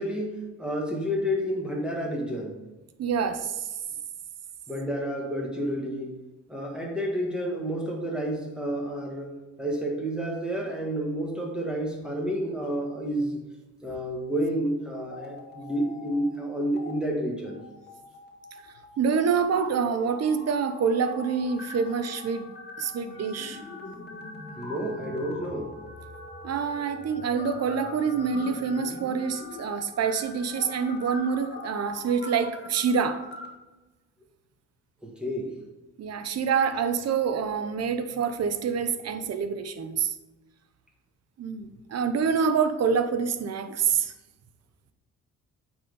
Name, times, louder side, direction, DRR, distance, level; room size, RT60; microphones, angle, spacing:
voice 1, 0.0-2.7 4.7-6.2 6.5-9.3 9.6-13.4 13.8-17.7 24.6-25.8 35.0-35.5, equal, 5° right, -2 dB, 1.6 m, -30 dB
voice 2, 3.0-3.7 19.0-22.5 22.8-23.6 26.4-33.2 36.0-40.1 41.4-44.1, right 6 dB, 55° right, 10 dB, 0.8 m, -26 dB
sound 1, 15.0-16.4 16.6-16.9 17.4-33.5, left 2 dB, 35° left, 1.7 m, -43 dB
8.8 x 4.4 x 5.4 m, 1.1 s
cardioid pair, 90°, 30 cm